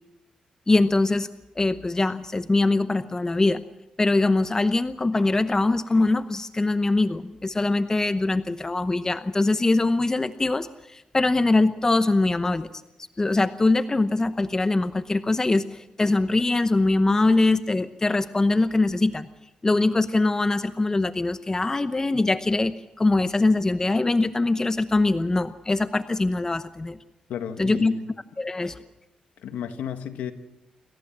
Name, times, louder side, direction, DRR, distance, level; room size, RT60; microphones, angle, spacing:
voice 1, 0.7-1.3 1.6-3.6 4.0-12.7 13.2-19.3 19.6-27.0 27.6-27.9 28.4-28.8, left 2 dB, 25° left, 11 dB, 0.9 m, -22 dB
voice 2, 27.3-28.1 29.4-30.3, left 8 dB, 90° left, 8 dB, 1.6 m, -33 dB
26.5 x 14.5 x 7.4 m, 0.95 s
cardioid pair, 75°, 3 cm